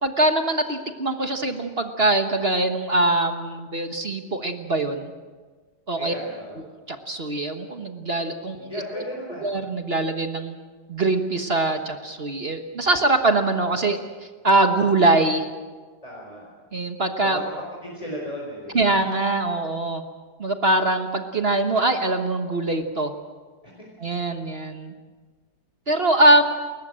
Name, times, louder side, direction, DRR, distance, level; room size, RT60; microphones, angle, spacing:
voice 1, 0.0-5.1 5.9-6.1 6.9-8.7 9.4-10.6 10.9-14.0 14.4-15.4 16.7-17.4 18.7-20.0 20.4-23.1 24.0-24.9 25.9-26.4, right 2 dB, 35° right, 6 dB, 1.4 m, -22 dB
voice 2, 6.0-6.7 8.5-9.5 16.0-16.5 17.2-17.4 17.8-18.8 23.8-23.9, equal, 20° left, -3 dB, 4.8 m, -35 dB
29.5 x 14.0 x 7.6 m, 1.4 s
omnidirectional pair, 1.9 m